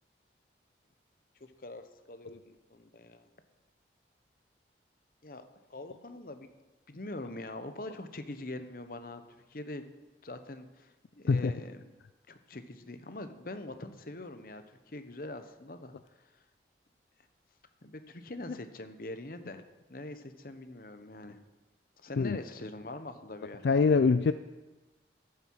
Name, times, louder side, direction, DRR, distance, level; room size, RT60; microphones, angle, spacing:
voice 1, 1.4-3.2 5.2-6.5 6.9-9.8 10.2-11.9 12.3-16.4 17.8-19.6 19.9-21.4 22.0-23.7, left 2 dB, 55° left, 9 dB, 1.0 m, -43 dB
voice 2, 23.6-24.3, left 4 dB, 75° left, 11 dB, 0.4 m, -23 dB
14.5 x 9.6 x 4.7 m, 1.1 s
head